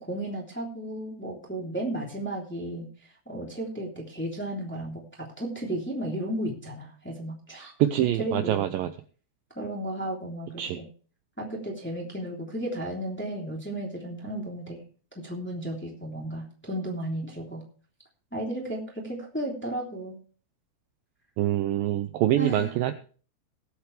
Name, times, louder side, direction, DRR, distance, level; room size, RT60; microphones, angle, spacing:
voice 1, 0.0-2.9 3.3-7.7 8.2-8.6 9.5-10.9 11.4-14.8 15.1-17.6 18.3-20.1 22.4-22.7, right 1 dB, 5° left, -2 dB, 2.3 m, -34 dB
voice 2, 7.8-8.9 10.6-10.8 21.4-22.9, right 12 dB, 85° right, 9 dB, 2.0 m, -25 dB
20.0 x 8.2 x 3.3 m, 0.39 s
omnidirectional pair, 4.9 m